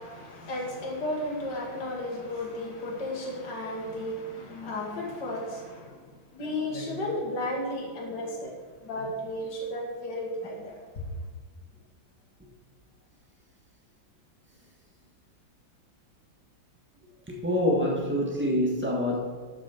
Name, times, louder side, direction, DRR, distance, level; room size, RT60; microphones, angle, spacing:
voice 1, 0.0-8.5 8.8-11.0, left 1 dB, 60° left, -1 dB, 2.4 m, -34 dB
voice 2, 17.3-19.2, left 1 dB, 5° right, -2 dB, 1.5 m, -26 dB
12.0 x 6.2 x 4.5 m, 1.5 s
omnidirectional pair, 2.2 m